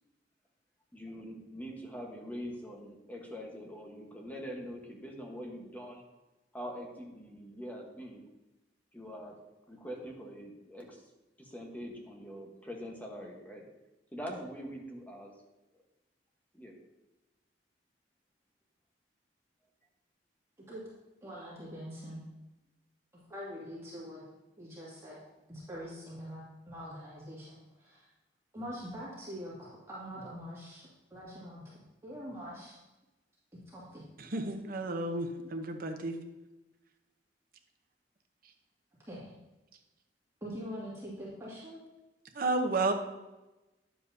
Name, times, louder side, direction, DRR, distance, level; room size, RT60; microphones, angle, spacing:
voice 1, 0.9-6.0 6.5-8.3 8.9-9.3 9.7-11.0 11.4-13.6 14.1-15.3 16.5-16.7, equal, 10° left, 0 dB, 1.2 m, -43 dB
voice 2, 21.2-22.2 23.3-24.2 24.6-25.2 25.5-26.4 26.7-27.5 27.8-28.1 28.5-30.8 31.1-31.6 32.0-32.8 33.5-34.0 39.1-39.3 40.4-41.8, equal, 15° right, -8 dB, 2.2 m, -43 dB
voice 3, 34.2-36.2 42.4-42.9, right 2 dB, 55° right, 4 dB, 0.9 m, -32 dB
10.0 x 7.4 x 2.7 m, 1.1 s
head